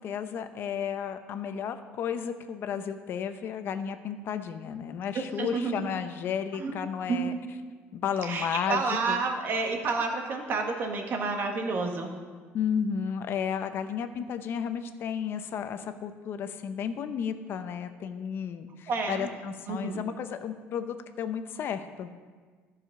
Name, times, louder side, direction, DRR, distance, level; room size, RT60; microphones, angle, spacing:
voice 1, 0.0-7.3 7.9-9.2 12.5-22.1, left 7 dB, 50° left, 9 dB, 0.7 m, -33 dB
voice 2, 5.1-5.9 6.6-6.7 7.1-7.4 8.2-12.1 18.9-19.3 19.7-20.0, right 4 dB, 45° right, 3 dB, 1.5 m, -30 dB
14.0 x 4.9 x 5.9 m, 1.5 s
cardioid pair, 135°, 5 cm